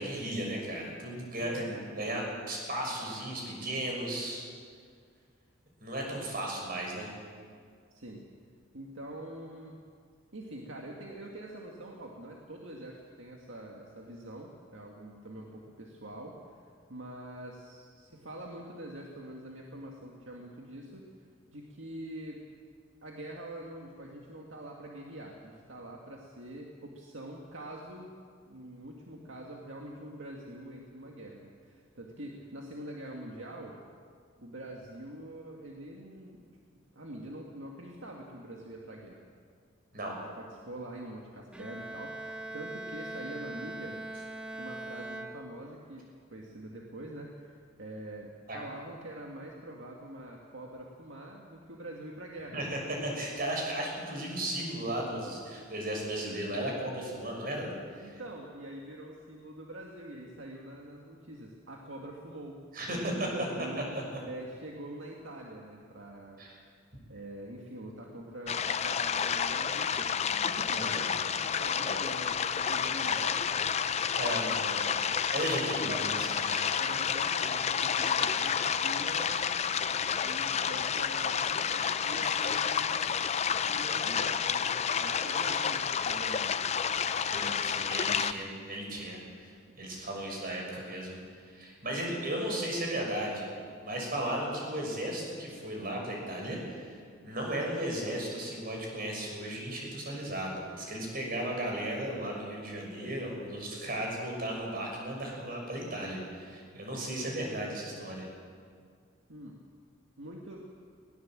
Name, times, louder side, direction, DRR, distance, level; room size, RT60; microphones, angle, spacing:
voice 1, 0.0-4.4 5.8-7.1 39.9-40.2 48.5-48.6 52.5-57.7 58.0-58.1 62.7-63.3 63.9-64.0 66.4-66.5 70.2-70.3 70.7-70.9 74.2-74.5 75.3-76.7 87.3-89.5 89.8-91.2 91.5-93.5 93.8-97.0 97.2-108.3, right 1 dB, 50° right, 0 dB, 6.3 m, -35 dB
voice 2, 1.4-1.9 7.9-8.2 8.7-9.8 10.3-16.6 16.9-21.0 21.5-22.4 23.0-28.1 28.5-33.8 34.4-36.4 37.0-39.2 40.0-44.0 44.5-52.6 58.0-62.6 62.9-63.8 64.2-66.4 67.1-70.1 70.4-73.7 74.4-75.0 75.5-75.9 76.8-79.5 80.2-83.2 83.7-86.6 109.3-109.6 110.2-110.6, right 1 dB, 75° right, -1 dB, 2.1 m, -45 dB
Bowed string instrument, 41.5-46.0, right 1 dB, 5° right, 1.2 m, -41 dB
sound 1, 68.5-88.3, left 7 dB, 35° left, 0.5 m, -30 dB
21.0 x 18.0 x 7.6 m, 2.1 s
head